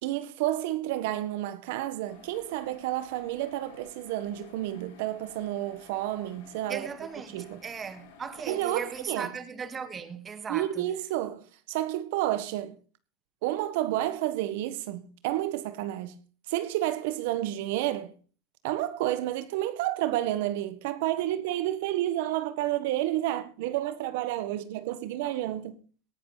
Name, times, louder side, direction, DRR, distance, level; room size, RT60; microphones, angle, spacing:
voice 1, 0.0-6.9 7.3-7.6 8.5-9.3 10.5-12.8 13.4-16.2 16.5-18.1 18.6-25.8, right 14 dB, 70° right, 1.5 m, -30 dB
sound 1, 2.1-9.1, left 6 dB, 75° left, 4.1 m, -53 dB
voice 2, 6.7-10.9, right 6 dB, 25° right, 1.6 m, -38 dB
18.0 x 11.5 x 4.1 m
supercardioid pair, 125°, 0 cm